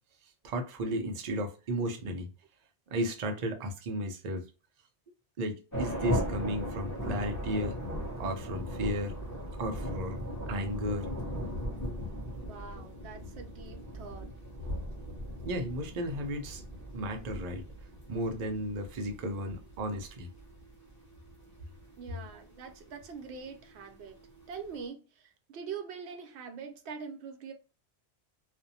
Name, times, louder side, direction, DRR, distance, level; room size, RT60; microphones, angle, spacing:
voice 1, 0.4-2.3 2.9-4.5 5.4-7.8 8.2-9.2 9.6-11.1 15.4-16.7 16.9-17.6 18.1-20.3, equal, 50° right, 0.6 m, -34 dB
sound 1, 5.7-24.9, equal, 20° left, 0.9 m, -39 dB
voice 2, 12.4-14.3 22.0-24.1 24.5-27.5, right 6 dB, 80° right, 0.8 m, -43 dB
2.5 x 2.1 x 2.7 m
omnidirectional pair, 1.1 m